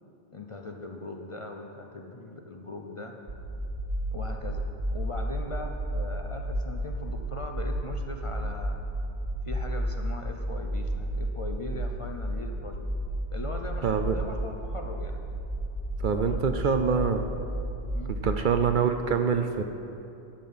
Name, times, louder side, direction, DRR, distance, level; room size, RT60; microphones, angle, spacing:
voice 1, 0.3-3.1 4.1-8.8 9.5-12.9 13.3-15.3 16.1-16.7 17.9-18.2, left 2 dB, 40° left, 3 dB, 0.5 m, -40 dB
sound 1, 3.3-18.4, right 1 dB, 40° right, 1.1 m, -32 dB
voice 2, 13.8-14.2 16.0-17.2 18.1-19.6, right 6 dB, 60° right, 7 dB, 0.6 m, -25 dB
11.5 x 7.7 x 5.5 m, 2.8 s
omnidirectional pair, 1.1 m